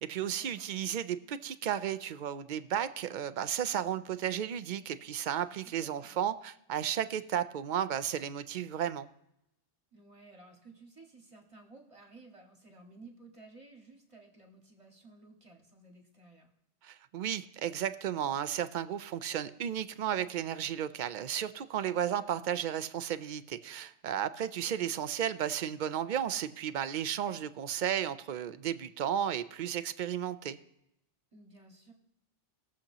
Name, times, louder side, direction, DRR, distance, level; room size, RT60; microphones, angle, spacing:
voice 1, 0.0-9.1 16.8-30.6, right 9 dB, 55° right, 12 dB, 0.6 m, -34 dB
voice 2, 5.6-6.1 9.9-16.5 24.7-25.0 31.3-31.9, right 3 dB, 25° right, 1 dB, 1.9 m, -55 dB
21.0 x 7.3 x 2.9 m, 0.84 s
omnidirectional pair, 1.2 m